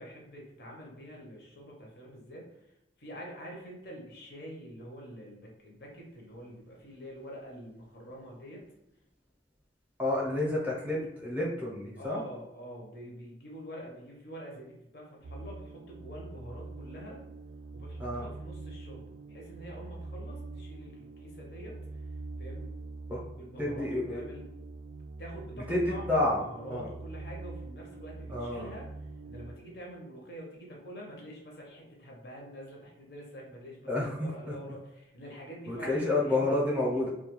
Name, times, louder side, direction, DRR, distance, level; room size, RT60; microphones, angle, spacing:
voice 1, 0.0-8.7 12.0-17.2 17.7-21.8 22.4-22.7 23.3-24.5 25.2-28.9 29.2-36.4, equal, 60° left, -1 dB, 0.6 m, -46 dB
voice 2, 10.0-12.2 18.0-18.2 23.1-23.2 23.6-24.2 25.7-26.4 26.7-26.9 28.3-28.7 33.9-34.5 35.7-37.1, left 2 dB, 10° right, -5 dB, 0.6 m, -30 dB
sound 1, 15.2-29.6, right 3 dB, 75° right, 0.3 m, -44 dB
2.3 x 2.2 x 2.9 m, 0.86 s
head